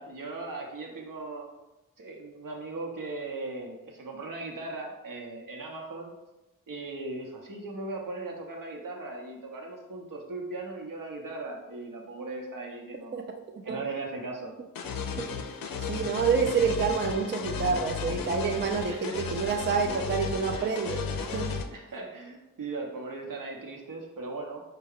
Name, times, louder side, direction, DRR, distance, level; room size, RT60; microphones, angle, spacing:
voice 1, 0.0-1.5 2.0-6.1 6.7-13.2 13.6-14.5 18.9-19.3 20.5-20.7 21.7-24.6, right 3 dB, 70° right, 0 dB, 0.9 m, -38 dB
sound 1, 14.7-21.6, left 5 dB, 85° left, 0.5 m, -34 dB
voice 2, 15.9-21.0 21.3-21.5, right 5 dB, 35° right, 3 dB, 0.4 m, -27 dB
4.4 x 2.3 x 3.6 m, 1.0 s
cardioid pair, 60°, 33 cm